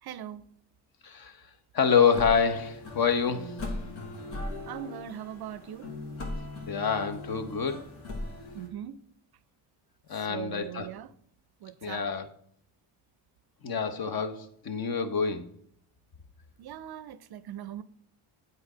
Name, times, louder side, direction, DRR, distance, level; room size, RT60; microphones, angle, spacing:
voice 1, 0.0-0.4 4.7-5.9 8.5-9.0 10.1-11.1 11.6-12.1 16.6-17.8, right 10 dB, 50° right, 0.5 m, -40 dB
voice 2, 1.0-1.4 1.7-3.6 6.7-7.8 10.1-10.9 11.8-12.3 13.6-15.5, left 6 dB, 45° left, 1.0 m, -27 dB
sound 1, 2.1-8.7, left 2 dB, 75° left, 2.0 m, -39 dB
7.9 x 4.0 x 5.0 m
supercardioid pair, 65°, 49 cm